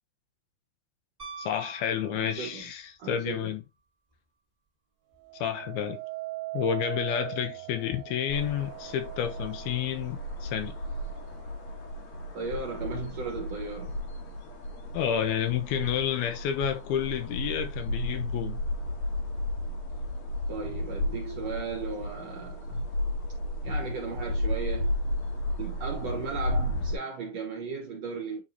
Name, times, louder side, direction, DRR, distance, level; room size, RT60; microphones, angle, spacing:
Piano, 1.2-2.8 5.1-5.2, right 5 dB, 25° right, 0.9 m, -44 dB
voice 1, 1.4-3.6 5.3-6.0 6.5-10.7 14.9-18.6, left 9 dB, 85° left, 2.6 m, -30 dB
voice 2, 2.1-2.7 3.0-3.5 12.3-14.0 20.5-22.8 23.6-25.0 25.6-28.4, right 5 dB, 60° right, 1.8 m, -36 dB
sound 1, 5.2-14.3 14.9-15.3, right 20 dB, 80° right, 2.4 m, -42 dB
sound 2, 8.3-27.0, left 1 dB, 65° left, 1.9 m, -33 dB
9.2 x 3.8 x 2.7 m
omnidirectional pair, 4.5 m